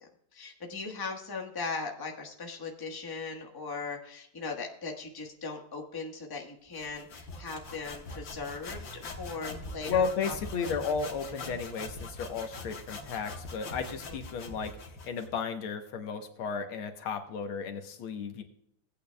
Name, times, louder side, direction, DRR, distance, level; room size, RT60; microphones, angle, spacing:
voice 1, 0.0-10.8 14.1-14.2, left 4 dB, 15° left, 1 dB, 1.0 m, -39 dB
sound 1, 6.7-15.4, left 2 dB, 70° left, 2.2 m, -43 dB
voice 2, 9.9-18.4, left 5 dB, 90° left, 6 dB, 1.9 m, -34 dB
17.5 x 8.7 x 2.3 m, 0.70 s
omnidirectional pair, 2.2 m